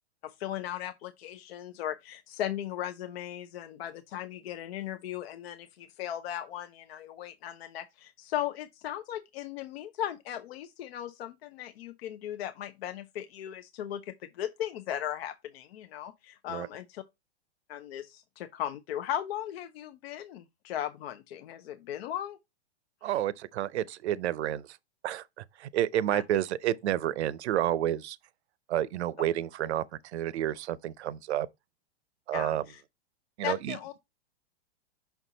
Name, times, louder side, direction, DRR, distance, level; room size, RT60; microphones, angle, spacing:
voice 1, 0.2-17.0 17.7-22.4 26.1-26.2 32.3-32.8 33.4-33.9, left 11 dB, 60° left, 0.6 m, -37 dB
voice 2, 23.0-24.8 25.0-28.2 28.7-31.5 32.3-32.6 33.4-33.8, right 12 dB, 75° right, 0.6 m, -30 dB
5.8 x 4.4 x 3.9 m
hypercardioid pair, 130°, 34 cm